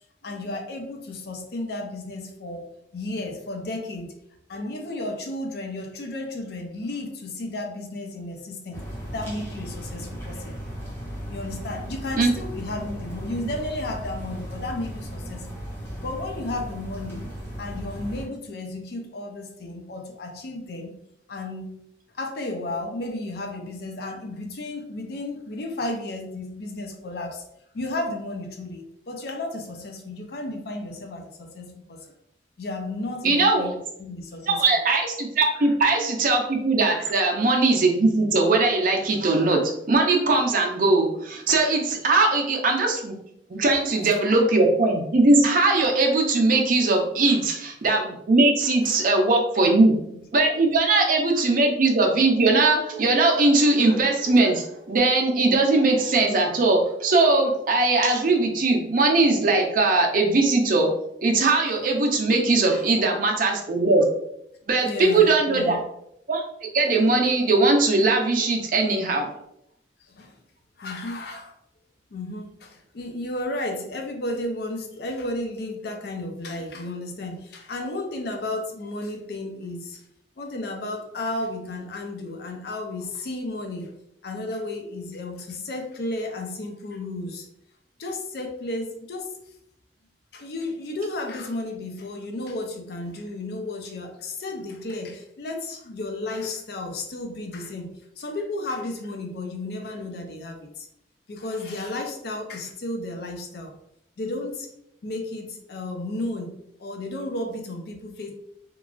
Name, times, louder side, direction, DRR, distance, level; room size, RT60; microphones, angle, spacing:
voice 1, 0.2-4.1 4.5-8.8 9.1-10.7 11.3-15.6 16.0-21.0 21.3-21.8 22.1-27.4 27.7-32.1 32.6-33.7 34.0-34.6 35.5-35.7 36.9-37.1 47.3-47.4 48.8-49.2 49.9-50.0 62.7-62.9 64.8-65.9 70.1-70.3 70.8-71.5 72.1-80.0 80.4-83.9 84.2-87.5 88.0-89.3 90.3-100.9 101.3-103.7 104.2-104.7 105.0-108.3, left 2 dB, 60° left, 3 dB, 0.4 m, -33 dB
sound 1, 8.7-18.3, equal, 15° left, 0.6 m, -36 dB
voice 2, 33.2-33.6 34.5-39.6 39.9-43.2 43.5-49.9 50.3-60.9 61.2-64.0 64.7-65.8 66.3-66.4 66.7-69.3, right 3 dB, 50° right, 2 dB, 0.5 m, -20 dB
3.0 x 2.3 x 2.4 m, 0.76 s
head